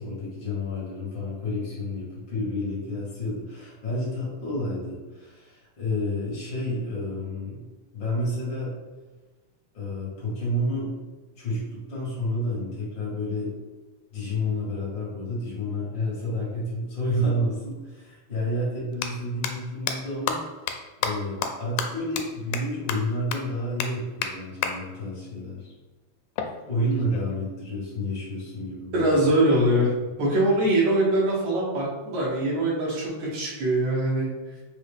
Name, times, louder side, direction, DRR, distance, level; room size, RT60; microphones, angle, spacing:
voice 1, 0.0-7.6 7.9-8.8 9.7-10.9 11.4-13.5 14.1-25.7 26.7-29.2, left 1 dB, 45° left, -6 dB, 1.9 m, -30 dB
sound 1, 17.7-17.8 18.8-19.1 19.4-19.5 19.9-20.0 20.3-20.4 20.7-20.8 21.0-21.1 21.4-21.5 21.8-21.9 22.2-22.3 22.5-22.6 22.9-23.0 23.3-23.4 23.8-23.9 24.2-24.3 24.6-24.7 26.4-27.4, left 9 dB, 85° left, 1.9 m, -28 dB
voice 2, 28.9-29.9 30.2-34.3, right 1 dB, 75° right, -5 dB, 2.6 m, -22 dB
5.3 x 2.7 x 3.5 m, 1.2 s
omnidirectional pair, 3.3 m